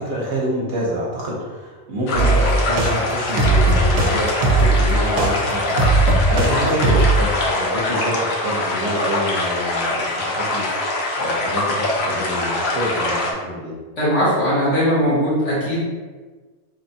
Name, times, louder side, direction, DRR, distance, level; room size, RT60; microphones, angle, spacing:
voice 1, 0.0-10.7 11.1-13.7, equal, 60° right, -4 dB, 1.0 m, -27 dB
sound 1, 2.1-13.3, left 2 dB, 85° left, 1.2 m, -23 dB
sound 2, 2.1-2.9 3.4-4.1 4.4-6.5 6.8-7.2, right 2 dB, 85° right, 1.0 m, -17 dB
voice 2, 14.0-15.8, equal, 60° left, -8 dB, 1.8 m, -19 dB
3.6 x 3.4 x 2.7 m, 1.3 s
omnidirectional pair, 1.4 m